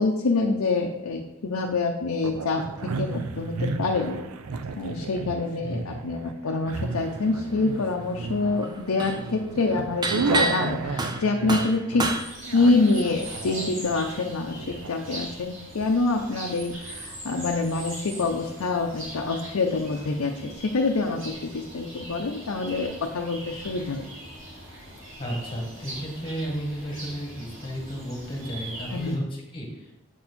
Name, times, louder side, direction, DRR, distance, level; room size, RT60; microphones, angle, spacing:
voice 1, 0.0-4.2 4.8-12.1 12.5-24.0 28.9-29.3, left 3 dB, 80° left, 2 dB, 0.6 m, -26 dB
sound 1, 2.2-14.9, right 4 dB, 90° right, 0.5 m, -33 dB
voice 2, 5.6-6.0 25.2-29.9, equal, 25° left, -1 dB, 1.5 m, -33 dB
sound 2, 7.1-7.6 7.9-12.2, right 2 dB, 20° right, 0.4 m, -29 dB
sound 3, 12.1-29.2, right 1 dB, 65° right, 2.5 m, -41 dB
7.3 x 4.3 x 4.2 m, 0.89 s
head